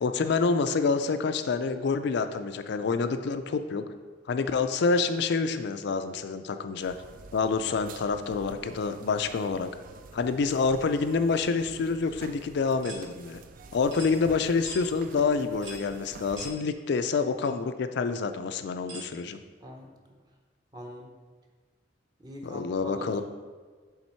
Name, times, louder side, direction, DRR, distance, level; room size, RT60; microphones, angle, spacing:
voice 1, 0.0-3.9 4.3-7.0 7.3-9.7 10.1-13.4 13.7-19.4 22.4-23.2, left 4 dB, 60° left, 9 dB, 0.4 m, -27 dB
sound 1, 6.8-16.5, right 4 dB, 45° right, 0.3 m, -49 dB
sound 2, 12.8-13.0 13.9-14.1 14.6-14.8 15.6-15.9 16.4-16.6 17.4-17.5 18.9-19.1, right 1 dB, 65° right, 1.3 m, -41 dB
voice 2, 19.6-19.9 20.7-21.1 22.2-23.1, equal, 20° right, 1 dB, 0.7 m, -42 dB
7.2 x 3.5 x 4.4 m, 1.5 s
head